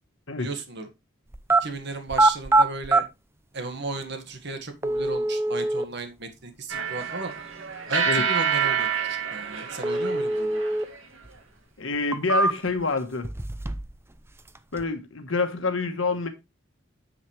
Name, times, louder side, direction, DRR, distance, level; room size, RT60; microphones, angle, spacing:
voice 1, 0.4-0.9 1.6-3.1 3.5-7.3 7.9-10.6, right 3 dB, 60° right, 1.8 m, -35 dB
sound 1, 1.3-1.6 2.1-3.0 4.0-4.1 4.8-5.9 9.8-10.9 11.2-11.3 11.9-12.8 13.2-14.0 14.2-14.8, right 2 dB, 15° right, 0.5 m, -23 dB
sound 2, 6.7-11.0, right 7 dB, 85° right, 2.2 m, -27 dB
voice 2, 11.8-13.3 14.7-16.3, left 3 dB, 75° left, 1.3 m, -27 dB
9.2 x 7.2 x 3.3 m
head